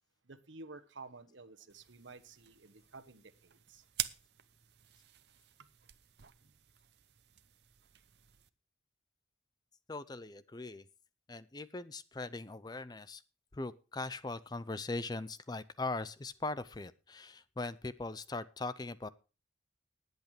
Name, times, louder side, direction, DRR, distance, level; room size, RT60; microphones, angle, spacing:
voice 1, 0.2-3.8, right 3 dB, 75° right, 1.2 m, -52 dB
sound 1, 1.7-8.5, right 13 dB, 60° right, 0.7 m, -47 dB
voice 2, 9.9-10.9 11.3-13.2 13.5-19.1, left 3 dB, 20° left, 0.5 m, -40 dB
19.5 x 8.1 x 3.3 m
head